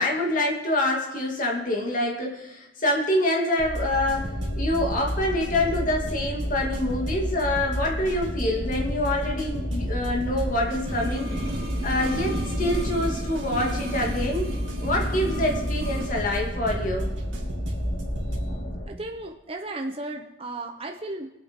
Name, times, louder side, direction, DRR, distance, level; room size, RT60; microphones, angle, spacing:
voice 1, 0.0-4.3 4.6-11.3 11.8-14.4 14.8-17.1, left 1 dB, 45° left, -1 dB, 2.4 m, -26 dB
sound 1, 3.6-18.4, equal, 85° right, 2.3 m, -32 dB
sound 2, 4.1-18.9, equal, 65° left, 3.1 m, -35 dB
sound 3, 10.7-16.2 16.4-16.5, right 1 dB, 55° right, 2.5 m, -35 dB
voice 2, 18.9-21.3, right 2 dB, 30° right, 3 dB, 0.8 m, -34 dB
22.0 x 8.5 x 3.7 m, 0.98 s
head